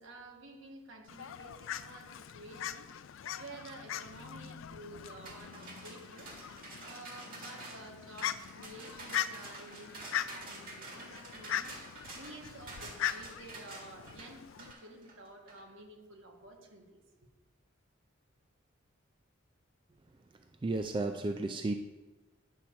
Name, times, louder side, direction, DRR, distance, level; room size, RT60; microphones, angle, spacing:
voice 1, 0.0-6.3 6.8-17.0, right 2 dB, 70° right, 2 dB, 1.4 m, -51 dB
Fowl, 1.1-14.7, left 10 dB, 75° left, 0.4 m, -41 dB
sound 1, 5.3-15.6, right 2 dB, 45° right, 1.8 m, -49 dB
voice 2, 20.6-21.7, right 2 dB, 25° right, 6 dB, 0.3 m, -33 dB
9.9 x 4.4 x 6.3 m, 1.2 s
head